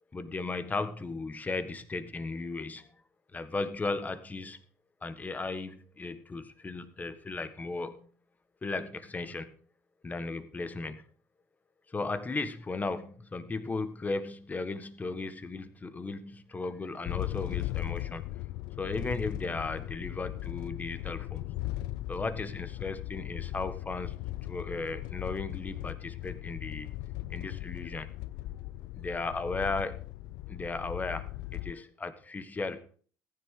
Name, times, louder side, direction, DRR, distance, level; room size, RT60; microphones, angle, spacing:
voice 1, 0.1-2.9 3.3-4.6 5.0-8.1 8.6-9.6 10.0-11.0 11.9-18.2 18.8-21.4 22.1-26.9 27.3-28.1 28.9-30.0 30.5-32.8, left 3 dB, 20° left, 11 dB, 1.5 m, -36 dB
sound 1, 17.0-31.7, left 16 dB, 75° left, 0.5 m, -38 dB
14.5 x 10.5 x 3.8 m, 0.43 s
supercardioid pair, 85°, 7 cm